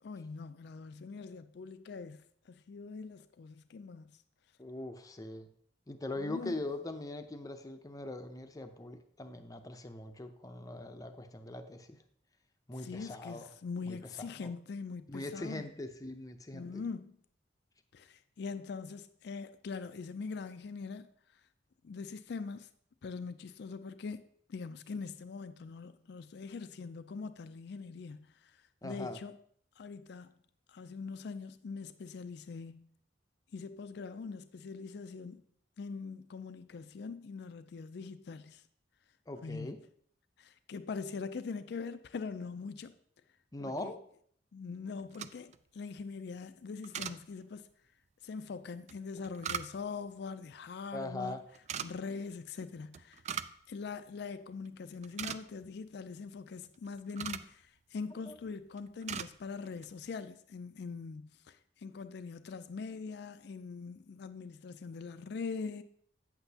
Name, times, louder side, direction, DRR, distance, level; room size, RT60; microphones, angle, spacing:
voice 1, 0.0-4.1 6.2-6.6 12.7-15.7 16.5-17.2 17.9-21.4 21.8-22.7 23.0-24.2 24.5-29.4 29.8-30.4 30.7-32.9 33.5-35.5 35.8-38.6 39.4-39.7 40.4-42.9 43.6-44.0 44.5-47.7 48.2-51.4 51.8-53.2 53.7-65.8, left 4 dB, 65° left, 0.4 m, -42 dB
voice 2, 4.6-5.5 5.9-12.0 12.7-13.5 13.8-14.0 14.4-14.5 15.1-16.9 28.8-29.2 39.3-39.8 43.5-44.0 50.9-51.4 58.3-58.4, left 2 dB, 20° left, 0.6 m, -41 dB
sound 1, 45.0-45.6 46.8-47.2 48.9-50.0 51.5-51.9 52.9-53.6 53.9-54.0 54.5-54.7 54.9-55.7 56.6-57.5 58.3-58.5 58.8-59.3 59.7-59.9, right 8 dB, 40° right, 0.3 m, -40 dB
8.7 x 8.0 x 2.8 m
head